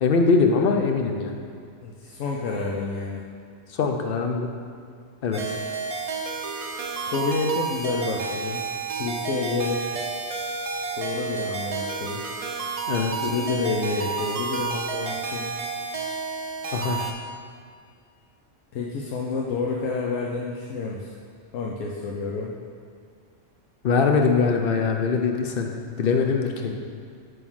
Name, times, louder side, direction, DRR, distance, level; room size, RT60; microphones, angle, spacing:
voice 1, 0.0-1.3 3.7-4.5 5.2-5.6 12.9-13.1 16.7-17.0 23.8-25.7 26.0-26.7, left 4 dB, 55° left, 4 dB, 0.8 m, -22 dB
voice 2, 1.8-3.2 7.0-10.1 10.9-12.2 13.2-15.5 18.7-21.1 21.5-22.5, left 4 dB, 85° left, -3 dB, 1.0 m, -29 dB
sound 1, 5.3-17.1, right 5 dB, 50° right, 0.4 m, -31 dB
7.2 x 3.5 x 6.2 m, 2.3 s
omnidirectional pair, 1.3 m